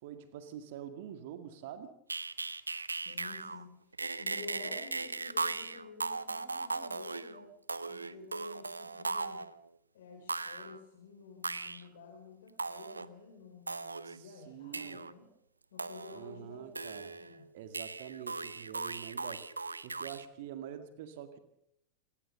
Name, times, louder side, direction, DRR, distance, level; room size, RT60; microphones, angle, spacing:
voice 1, 0.0-1.9 11.8-11.9 14.0-15.0 16.1-17.2 17.5-19.5 19.8-21.4, right 9 dB, 50° right, 9 dB, 2.0 m, -46 dB
sound 1, 2.1-3.6 3.9-9.6 10.3-10.8 11.4-11.8 12.6-13.1 13.7-14.2 14.7-15.1 15.8-16.4 16.8-17.4 17.7-20.3, right 3 dB, 80° right, 0.8 m, -38 dB
voice 2, 2.8-3.7 4.2-7.5 7.9-9.4 9.9-15.3 15.7-17.5, left 4 dB, 60° left, 0 dB, 4.8 m, -51 dB
27.5 x 15.5 x 6.8 m, 0.77 s
figure-of-eight pair, 90°, 0 cm